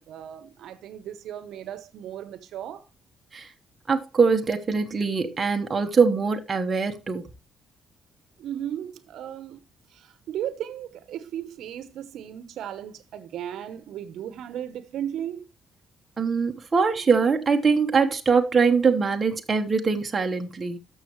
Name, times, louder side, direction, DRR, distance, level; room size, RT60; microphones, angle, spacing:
voice 1, 0.0-2.9 8.4-9.6 9.9-15.5, right 10 dB, 70° right, 0.9 m, -36 dB
voice 2, 3.9-7.3 16.2-20.8, right 5 dB, 20° right, 1.1 m, -22 dB
13.0 x 6.4 x 3.1 m
cardioid pair, 180°, 0 cm